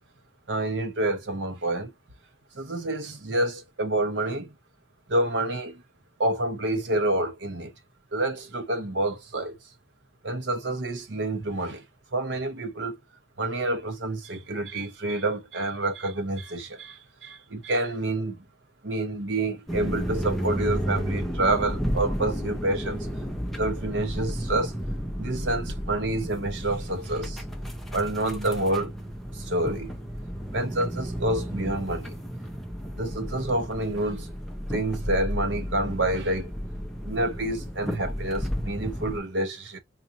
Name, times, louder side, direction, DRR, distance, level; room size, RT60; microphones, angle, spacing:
voice 1, 0.5-1.9 2.6-4.5 5.1-5.8 6.2-7.7 8.1-9.6 10.2-11.8 12.1-13.0 13.4-18.4 18.8-23.1 23.6-24.7 25.2-27.4 27.9-28.9 29.3-29.9 30.5-32.2 32.9-34.3 34.7-36.5 37.0-39.8, right 1 dB, 70° right, 0.9 m, -28 dB
sound 1, 19.7-39.2, equal, ahead, 0.6 m, -32 dB
4.2 x 2.6 x 2.8 m
head